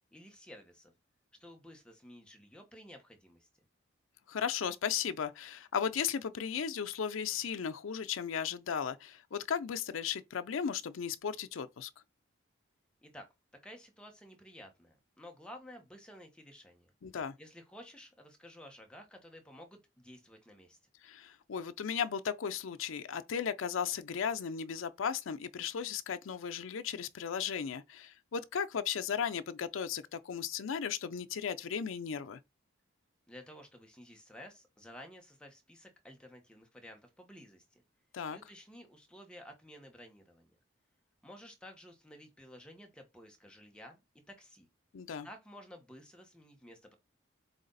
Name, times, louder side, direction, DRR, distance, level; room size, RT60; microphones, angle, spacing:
voice 1, 0.1-0.9 1.4-3.5 13.0-13.3 13.6-16.9 17.4-20.8 33.3-37.8 38.3-40.5 41.2-44.0 44.3-44.7 45.2-46.9, equal, 5° left, 1.2 m, -53 dB
voice 2, 4.3-11.9 17.0-17.3 21.0-32.4 38.1-38.4 44.9-45.3, left 7 dB, 80° left, 0.5 m, -36 dB
7.9 x 3.3 x 4.0 m
head